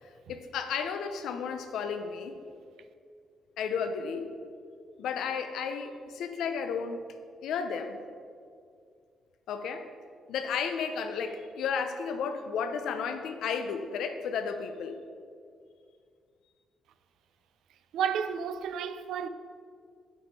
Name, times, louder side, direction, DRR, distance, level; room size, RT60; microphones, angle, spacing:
voice 1, 0.0-2.4 3.6-4.3 5.0-7.2 7.4-8.0 9.5-9.9 10.3-15.0, left 6 dB, 90° left, 0.5 m, -33 dB
voice 2, 17.9-19.3, right 7 dB, 90° right, 0.3 m, -31 dB
7.0 x 5.2 x 4.6 m
cardioid pair, 110°, 0 cm